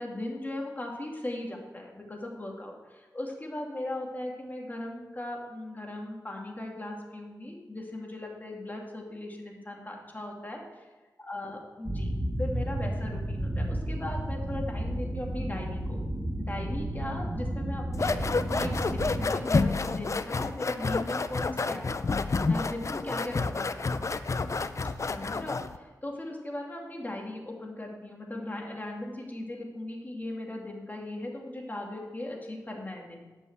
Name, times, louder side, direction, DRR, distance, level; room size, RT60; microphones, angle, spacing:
voice 1, 0.0-10.9 11.2-12.1 12.4-16.0 16.4-22.0 22.5-24.0 25.0-33.2, left 1 dB, 25° left, 0 dB, 2.4 m, -38 dB
sound 1, 11.9-19.3, right 1 dB, 30° right, 1.4 m, -32 dB
sound 2, 17.9-25.8, left 3 dB, 45° left, 0.5 m, -29 dB
10.5 x 5.6 x 8.0 m, 1.2 s
wide cardioid pair, 70°, 7 cm